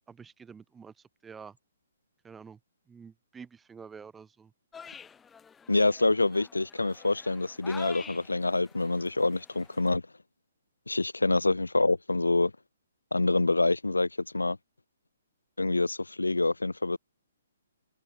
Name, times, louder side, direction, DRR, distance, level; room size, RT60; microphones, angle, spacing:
voice 1, 0.1-1.6 2.2-2.6 2.9-4.5, right 6 dB, 10° right, 7.7 m, -48 dB
sound 1, 4.7-9.9, left 6 dB, 10° left, 2.0 m, -48 dB
voice 2, 5.7-10.0 10.9-12.5 13.1-14.1 14.3-14.6 15.6-17.0, left 2 dB, 90° left, 0.6 m, -26 dB
figure-of-eight pair, 135°, 0 cm